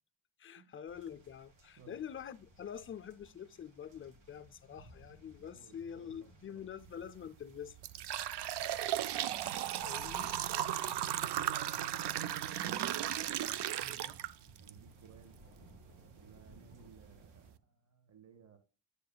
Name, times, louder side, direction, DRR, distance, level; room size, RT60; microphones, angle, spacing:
voice 1, 0.4-7.8 9.8-10.3, left 8 dB, 30° left, 0.4 m, -46 dB
sound 1, 0.9-17.5, right 1 dB, 85° right, 2.9 m, -60 dB
voice 2, 5.5-6.3 10.3-10.6 11.2-13.1 13.4-14.2 14.6-15.4 16.2-18.6, right 6 dB, 35° right, 1.4 m, -59 dB
sound 2, 6.9-7.1 7.6-14.7 15.2-15.3 16.1-16.2 16.7-16.8 17.3-17.5, right 11 dB, 65° right, 0.6 m, -36 dB
8.5 x 6.7 x 2.3 m
cardioid pair, 135°, 45 cm